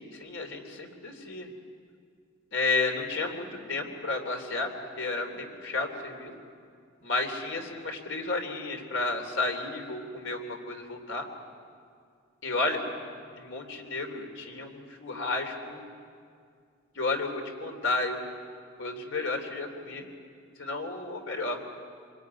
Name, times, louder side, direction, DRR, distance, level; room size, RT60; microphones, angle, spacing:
voice 1, 0.0-1.5 2.5-4.7 5.0-6.3 7.0-11.2 12.4-12.8 13.3-15.8 16.9-18.3 18.8-20.0 20.6-21.6, left 3 dB, 85° left, 4 dB, 3.4 m, -32 dB
26.0 x 21.5 x 9.6 m, 2.2 s
head